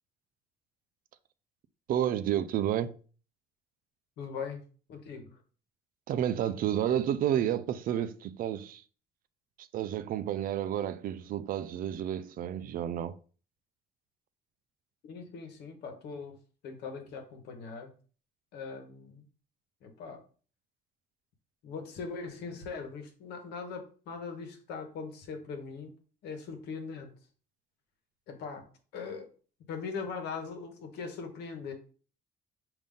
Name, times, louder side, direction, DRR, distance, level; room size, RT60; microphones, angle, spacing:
voice 1, 1.9-2.9 6.1-8.8 9.6-13.2, right 10 dB, 55° right, 0.4 m, -30 dB
voice 2, 4.2-4.6 4.9-5.3 15.0-16.4 16.6-17.9 18.5-19.3 19.8-20.2 21.6-25.9 26.2-27.1 28.3-28.6 28.9-29.3 29.7-31.7, left 5 dB, 80° left, 1.1 m, -40 dB
5.2 x 2.7 x 3.6 m
cardioid pair, 110°, 17 cm